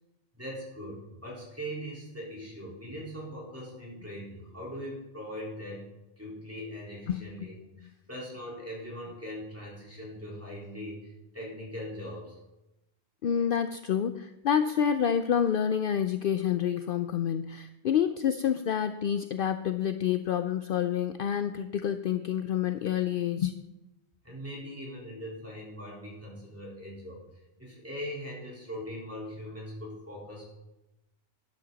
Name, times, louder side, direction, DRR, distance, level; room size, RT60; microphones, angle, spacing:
voice 1, 0.3-5.9 6.2-12.4 24.2-27.2 27.6-30.5, equal, 10° right, -5 dB, 4.0 m, -41 dB
voice 2, 13.2-23.5, left 8 dB, 60° left, 9 dB, 0.7 m, -28 dB
12.0 x 10.5 x 4.0 m, 0.97 s
omnidirectional pair, 1.1 m